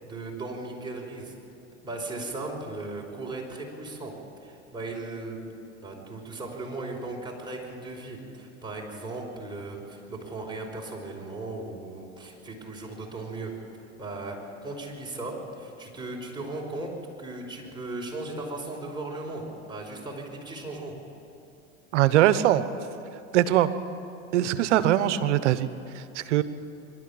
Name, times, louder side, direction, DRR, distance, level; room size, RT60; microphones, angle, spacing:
voice 1, 0.0-1.3 1.8-4.1 4.4-5.4 5.8-13.5 14.0-21.0, right 2 dB, 15° right, -2 dB, 5.1 m, -37 dB
voice 2, 21.9-22.6 23.3-23.7 24.3-26.4, right 12 dB, 80° right, 13 dB, 1.1 m, -22 dB
24.5 x 12.5 x 8.7 m, 2.8 s
hypercardioid pair, 100°, 35 cm